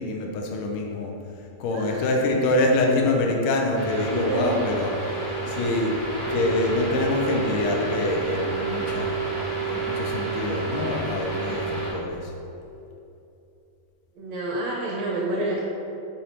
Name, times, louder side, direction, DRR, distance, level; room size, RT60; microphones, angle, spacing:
voice 1, 0.0-5.9 6.3-9.1 9.6-12.3, left 2 dB, 75° left, 1 dB, 2.2 m, -25 dB
voice 2, 1.7-2.1 4.0-4.6 14.1-15.6, right 2 dB, 70° right, -3 dB, 1.7 m, -29 dB
sound 1, 3.7-11.9, right 4 dB, 40° left, 2.2 m, -29 dB
8.1 x 5.1 x 4.4 m, 2.8 s
omnidirectional pair, 3.9 m